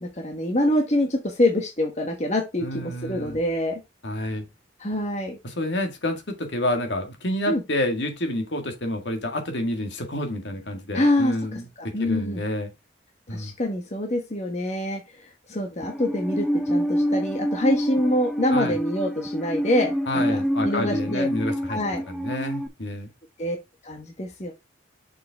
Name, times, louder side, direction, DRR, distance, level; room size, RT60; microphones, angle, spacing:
voice 1, 0.0-3.8 4.8-5.4 7.5-7.6 10.9-11.3 11.9-12.4 13.3-21.3 21.7-22.0 23.4-23.6 23.8-24.5, left 1 dB, 35° left, 1.2 m, -25 dB
voice 2, 2.6-3.4 4.0-4.5 5.4-11.7 12.0-12.7 13.3-13.5 18.5-18.8 20.1-21.8 22.1-23.1, left 1 dB, 65° left, 1.8 m, -29 dB
Musical instrument, 15.8-22.7, equal, ahead, 0.7 m, -27 dB
6.7 x 5.4 x 3.5 m
head